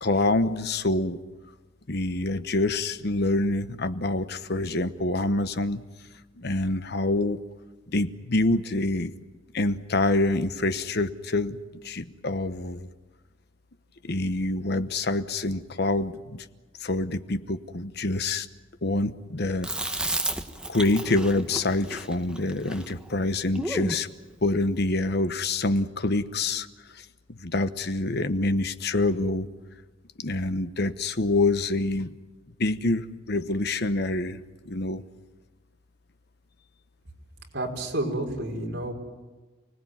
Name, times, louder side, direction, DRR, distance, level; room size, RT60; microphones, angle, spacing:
voice 1, 0.0-1.2 1.9-5.8 6.4-7.4 7.9-9.1 9.5-11.6 11.8-12.9 14.0-16.4 16.8-18.5 18.8-20.2 20.7-24.1 24.4-26.7 26.9-29.5 30.2-32.1 32.6-35.0, left 2 dB, 55° left, 1.1 m, -26 dB
Chewing mastication, 19.6-24.0, right 1 dB, 5° right, 1.3 m, -33 dB
voice 2, 37.5-38.9, right 1 dB, 55° right, 5.0 m, -30 dB
29.0 x 19.0 x 9.4 m
head